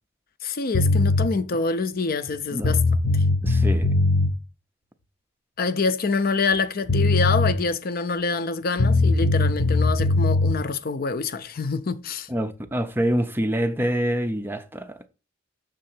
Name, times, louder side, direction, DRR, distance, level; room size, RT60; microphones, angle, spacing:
voice 1, 0.4-2.8 3.1-3.2 5.6-12.3, left 4 dB, 50° left, 0.5 m, -26 dB
sound 1, 0.7-1.3 2.3-2.4 2.6-4.3 6.5-6.6 6.9-7.5 8.8-10.6, left 2 dB, 75° left, 1.0 m, -20 dB
voice 2, 3.4-3.9 12.3-14.9, equal, 10° right, 0.5 m, -26 dB
6.5 x 3.7 x 6.0 m
head